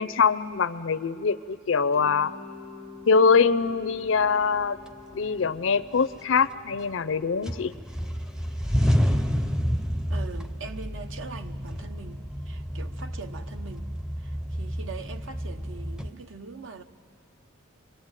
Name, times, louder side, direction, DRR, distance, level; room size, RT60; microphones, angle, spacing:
voice 1, 0.0-2.3 3.1-4.8 5.1-7.7, left 5 dB, 65° left, 0.6 m, -23 dB
Mallet percussion, 1.9-10.7, left 4 dB, 90° right, 7.0 m, -48 dB
sound 1, 4.2-4.3 4.9-5.6 6.0-7.1 7.4-16.1, equal, 5° right, 0.6 m, -29 dB
voice 2, 10.1-13.9 14.2-16.8, right 4 dB, 65° right, 1.0 m, -42 dB
26.5 x 23.0 x 9.0 m
head